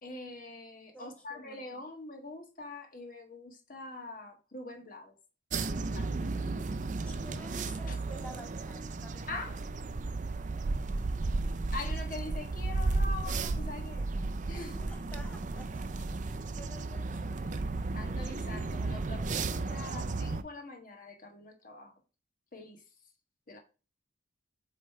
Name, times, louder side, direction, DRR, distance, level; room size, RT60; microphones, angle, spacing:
voice 1, 0.0-5.1 5.7-6.3 7.9-8.0 9.3-9.6 11.7-14.1 14.5-14.9 17.9-21.9 22.5-22.8 23.5-23.6, left 2 dB, 45° left, 1.4 m, -44 dB
voice 2, 0.9-1.8 7.1-9.6 14.5-15.9 16.4-17.4, left 1 dB, 5° left, 1.0 m, -51 dB
sound 1, 5.5-20.4, right 3 dB, 40° right, 0.4 m, -34 dB
7.9 x 3.2 x 4.5 m
head